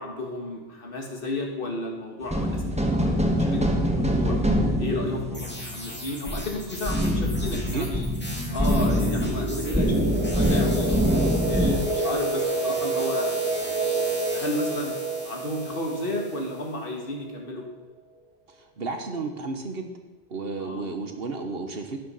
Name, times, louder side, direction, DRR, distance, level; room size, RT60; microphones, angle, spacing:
voice 1, 0.0-4.4 4.8-8.1 8.5-10.0 10.3-10.9 11.4-13.3 14.3-15.0 15.3-17.6 20.6-20.9, left 1 dB, 50° left, 1 dB, 2.1 m, -32 dB
sound 1, 2.3-11.8, equal, 5° right, 1.3 m, -24 dB
sound 2, 5.3-16.7, equal, 10° left, 2.3 m, -39 dB
sound 3, 7.0-17.5, right 2 dB, 85° right, 3.1 m, -30 dB
voice 2, 7.7-8.1 8.8-9.0 18.5-19.9 20.3-22.0, right 3 dB, 60° right, 6 dB, 1.5 m, -33 dB
12.5 x 9.4 x 5.7 m, 1.2 s
omnidirectional pair, 1.1 m